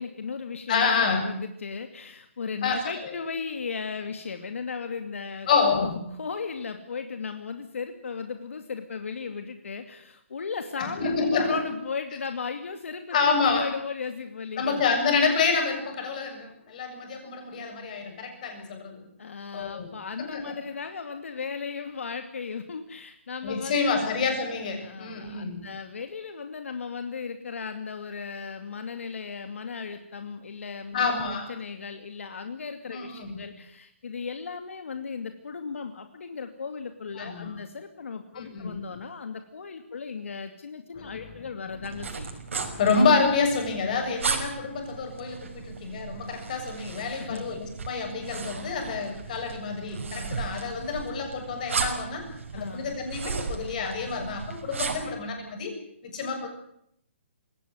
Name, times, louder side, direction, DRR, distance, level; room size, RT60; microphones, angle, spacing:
voice 1, 0.0-5.9 6.2-14.8 19.2-24.1 24.8-42.4 47.2-47.5 52.6-53.0, left 5 dB, 75° left, 7 dB, 2.5 m, -36 dB
voice 2, 0.7-1.3 2.6-3.2 5.5-6.0 10.8-11.6 13.1-13.7 14.6-19.1 19.5-19.9 20.2-20.6 23.4-25.7 30.9-31.5 32.9-33.4 37.2-37.5 38.3-38.8 41.0-41.2 41.7-41.9 42.5-55.7 56.0-56.5, left 4 dB, 35° left, 4 dB, 7.2 m, -28 dB
sound 1, 41.8-55.2, right 5 dB, 75° right, 5.8 m, -35 dB
22.0 x 17.5 x 9.6 m, 0.71 s
hypercardioid pair, 170°, 7 cm